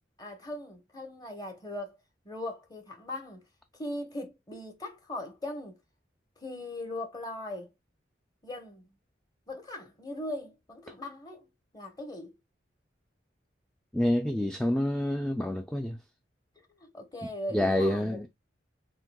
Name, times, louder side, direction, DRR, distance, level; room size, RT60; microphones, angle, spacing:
voice 1, 0.2-2.0 2.2-3.4 3.7-5.8 6.4-7.7 8.4-8.9 9.5-11.5 11.7-12.3 16.8-18.2, left 1 dB, 20° left, 1.0 m, -39 dB
voice 2, 13.9-16.0 17.5-18.3, left 1 dB, 5° left, 0.3 m, -27 dB
7.5 x 2.7 x 2.2 m
head